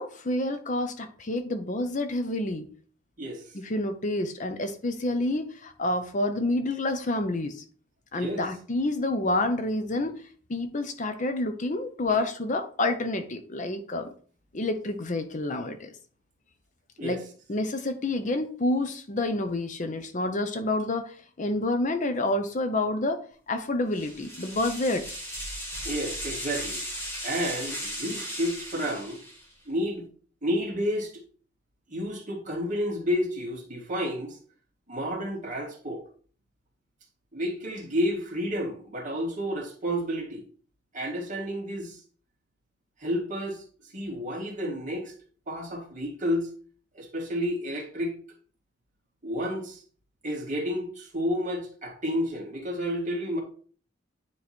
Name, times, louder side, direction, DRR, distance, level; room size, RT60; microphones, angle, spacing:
voice 1, 0.0-2.7 3.5-7.6 8.1-10.2 10.5-14.1 14.5-15.9 17.0-17.2 17.5-23.2 23.5-25.0, left 2 dB, 40° left, 0.7 m, -28 dB
sound 1, 23.9-29.5, equal, 10° left, 2.0 m, -36 dB
voice 2, 25.8-26.8 27.2-29.2 29.7-30.0 30.4-31.1 31.9-34.4 34.9-36.0 37.3-40.4 40.9-42.0 43.0-43.6 43.9-45.1 45.5-46.5 46.9-48.1 49.2-49.8 50.2-53.4, equal, 40° right, 2.1 m, -30 dB
9.5 x 3.2 x 4.2 m
head